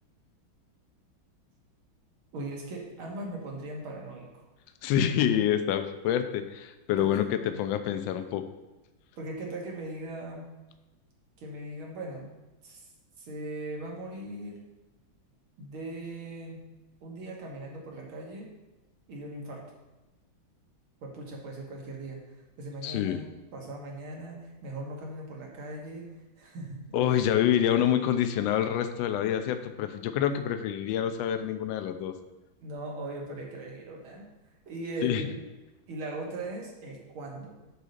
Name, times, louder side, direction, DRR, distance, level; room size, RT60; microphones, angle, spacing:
voice 1, 2.3-4.5 7.0-7.1 9.2-10.5 11.4-12.3 12.6-12.8 13.2-14.6 15.6-16.6 17.0-18.5 19.1-19.6 21.0-22.2 22.6-26.1 26.4-26.8 27.1-27.2 32.6-34.3 34.7-35.4 35.9-37.6, right 2 dB, 80° right, -1 dB, 2.3 m, -39 dB
voice 2, 4.8-8.5 22.8-23.2 26.9-32.1 35.0-35.2, left 10 dB, 75° left, 8 dB, 1.3 m, -27 dB
7.5 x 3.9 x 6.5 m, 1.1 s
omnidirectional pair, 2.2 m